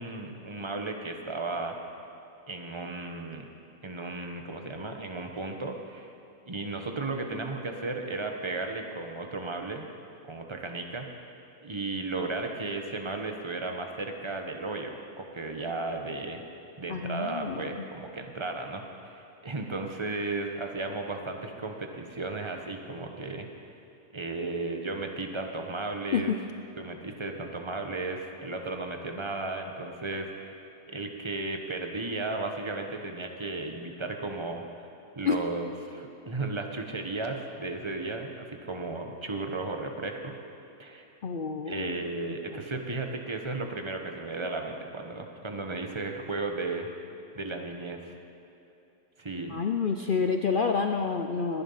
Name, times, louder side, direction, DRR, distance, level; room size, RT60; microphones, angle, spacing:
voice 1, 0.0-1.8 2.5-3.5 3.8-6.1 6.5-9.9 10.2-11.1 11.6-16.4 16.8-23.5 24.1-26.3 26.8-30.6 30.9-34.9 35.2-40.4 40.8-41.1 41.7-46.9 47.3-48.1 49.2-49.5, right 3 dB, 20° right, 3 dB, 1.1 m, -35 dB
voice 2, 16.9-17.8 26.1-26.4 35.2-35.4 41.2-42.0 42.5-42.6 49.5-51.6, left 5 dB, 70° left, 5 dB, 0.4 m, -28 dB
20.0 x 11.0 x 5.7 m, 2.9 s
omnidirectional pair, 1.7 m